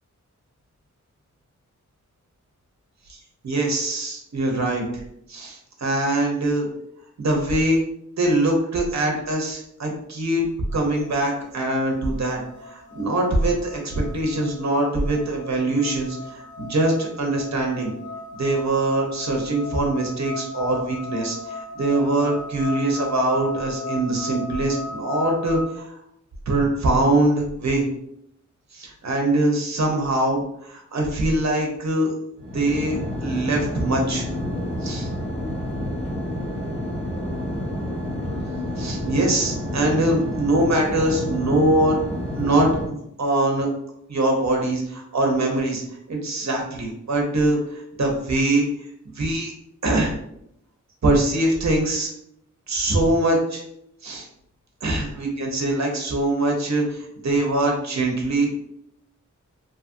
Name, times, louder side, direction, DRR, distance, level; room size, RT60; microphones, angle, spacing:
voice 1, 3.4-4.8 5.3-6.7 7.2-7.8 8.2-10.5 10.7-17.9 18.3-25.9 26.5-27.9 28.7-32.1 32.5-33.0 33.2-34.2 34.8-35.1 38.8-42.0 42.4-43.7 44.1-45.8 46.1-48.7 49.2-49.5 49.8-50.1 51.0-52.1 52.7-53.6 54.0-54.3 54.8-58.5, right 1 dB, 60° right, 1 dB, 0.7 m, -23 dB
sound 1, 10.7-25.7, left 3 dB, 75° left, 0.6 m, -37 dB
sound 2, 32.4-42.9, left 1 dB, 15° left, 1.1 m, -29 dB
2.7 x 2.4 x 2.6 m, 0.74 s
wide cardioid pair, 75°, 31 cm